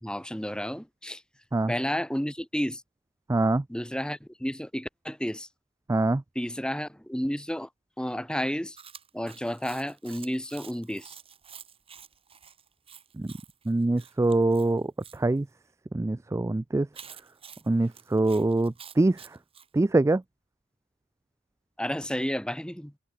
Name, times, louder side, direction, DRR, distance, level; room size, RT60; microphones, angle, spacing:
voice 1, 0.0-1.2 1.7-2.8 3.7-5.5 6.3-7.7 8.0-8.8 9.1-11.1 21.8-22.9, equal, 5° left, 1.8 m, -31 dB
voice 2, 3.3-3.6 5.9-6.2 13.2-13.3 13.7-14.8 15.1-15.5 15.9-16.9 17.7-19.2 19.7-20.2, right 2 dB, 15° right, 0.3 m, -24 dB
Chewing mastication, 8.8-15.2 16.9-19.7, right 7 dB, 30° right, 4.4 m, -49 dB
head